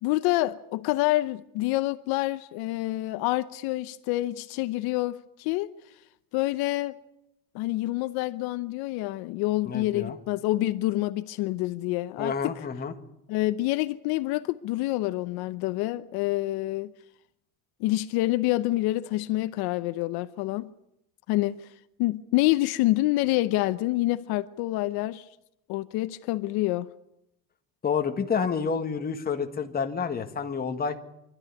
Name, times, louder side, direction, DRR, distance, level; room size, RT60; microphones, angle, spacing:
voice 1, 0.0-5.7 6.3-7.0 7.5-12.6 13.3-16.9 17.8-20.7 21.3-21.6 22.0-25.3 25.7-26.9, left 17 dB, 75° left, 0.8 m, -27 dB
voice 2, 9.6-10.2 12.2-12.9 27.8-31.0, left 6 dB, 25° left, 1.7 m, -29 dB
25.0 x 13.0 x 9.6 m
cardioid pair, 145°, 38 cm